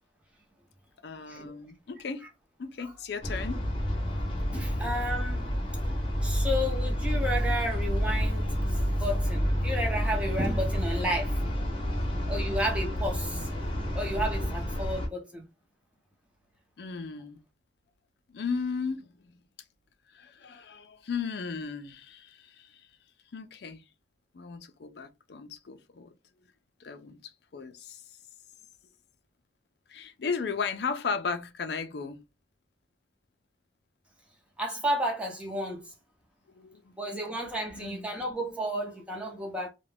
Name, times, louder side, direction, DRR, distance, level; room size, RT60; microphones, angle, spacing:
voice 1, 1.0-2.2 2.6-3.6 16.8-17.4 18.3-19.4 20.1-22.9 23.3-23.8 24.3-26.1 26.8-28.0 29.9-32.2 36.5-37.0 37.8-38.1, left 5 dB, 60° left, 0.4 m, -36 dB
sound 1, 3.2-15.1, equal, 30° left, 0.8 m, -29 dB
voice 2, 4.5-5.4 5.8-11.3 12.3-13.5 13.9-15.4 34.6-35.9 37.0-39.7, equal, 5° right, 0.6 m, -32 dB
2.4 x 2.1 x 3.3 m
head